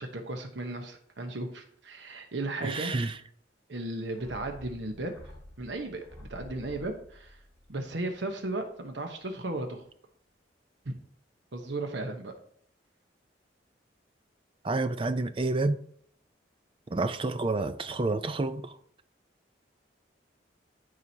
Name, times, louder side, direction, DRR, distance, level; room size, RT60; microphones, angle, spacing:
voice 1, 0.0-2.9 3.7-5.3 5.6-6.0 6.3-7.4 7.7-9.8 10.8-11.0 11.5-12.3, right 2 dB, 75° right, 1.0 m, -35 dB
voice 2, 2.6-3.1 14.6-15.8 16.9-18.7, right 2 dB, 30° right, 0.5 m, -29 dB
sound 1, 4.2-8.8 9.0-9.1, left 1 dB, 15° left, 3.1 m, -50 dB
14.0 x 4.8 x 2.8 m
head